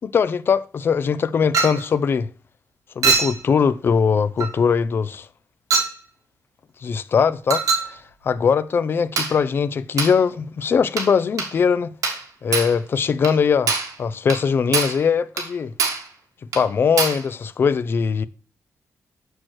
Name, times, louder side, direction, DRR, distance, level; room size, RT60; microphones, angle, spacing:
voice 1, 0.0-2.3 3.0-5.3 6.8-8.0 8.2-11.9 12.4-13.7 14.0-15.7 16.5-18.3, left 6 dB, 45° left, 0.4 m, -21 dB
Chink clink, 1.5-1.9 3.0-3.4 4.4-4.6 5.7-6.0 7.5-7.9 9.2-9.4 10.0-10.2 11.0-11.1 11.4-11.5 12.0-12.3 12.5-12.8 13.2-13.4 13.7-14.0 14.3-14.4 14.7-15.0 15.4-15.5 15.8-16.1 16.5-16.6 17.0-17.2, right 5 dB, 85° right, 1.4 m, -23 dB
6.2 x 6.1 x 3.1 m
wide cardioid pair, 155°, 6 cm